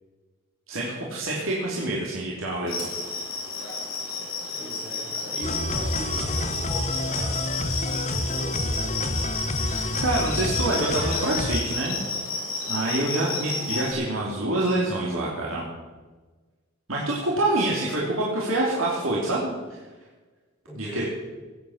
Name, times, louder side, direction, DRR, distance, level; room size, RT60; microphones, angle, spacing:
voice 1, 0.7-2.9 9.7-12.0 12.7-15.6 16.9-19.5 20.7-21.0, right 2 dB, 85° right, -4 dB, 3.0 m, -26 dB
sound 1, 2.7-13.9, left 3 dB, 75° left, 6.8 m, -31 dB
voice 2, 4.5-9.4 20.7-21.1, equal, 5° right, -5 dB, 6.6 m, -40 dB
sound 2, 5.4-11.6, left 1 dB, 35° left, 1.0 m, -29 dB
18.0 x 9.4 x 7.3 m, 1.3 s
head